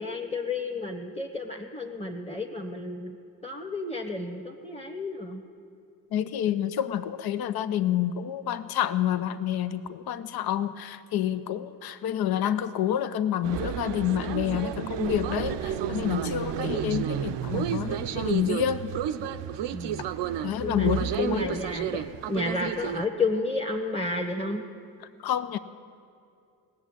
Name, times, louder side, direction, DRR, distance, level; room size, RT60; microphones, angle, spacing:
voice 1, 0.0-3.2 3.4-5.4 6.5-6.6 19.7-20.1 20.6-20.9 21.1-24.6, left 3 dB, 15° left, 0 dB, 1.3 m, -31 dB
voice 2, 6.1-18.9 20.4-21.6 25.2-25.6, left 10 dB, 65° left, 13 dB, 0.6 m, -28 dB
sound 1, 13.4-23.0, right 10 dB, 85° right, 0.6 m, -31 dB
17.5 x 7.2 x 8.9 m, 2.5 s
supercardioid pair, 45°, 41 cm